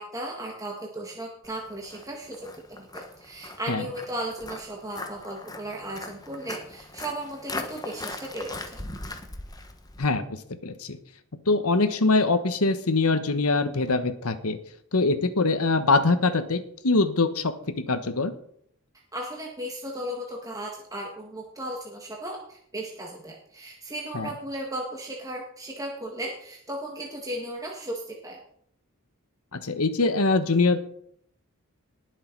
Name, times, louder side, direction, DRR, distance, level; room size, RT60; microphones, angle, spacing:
voice 1, 0.0-8.8 19.1-28.4, right 1 dB, 15° right, -1 dB, 1.7 m, -36 dB
Walk footsteps, 1.4-10.1, left 2 dB, 15° left, 1.2 m, -40 dB
voice 2, 10.0-11.0 11.5-14.6 14.9-18.3 24.1-24.3 29.5-30.8, left 3 dB, 70° left, 10 dB, 1.2 m, -23 dB
19.5 x 6.5 x 4.6 m, 0.66 s
head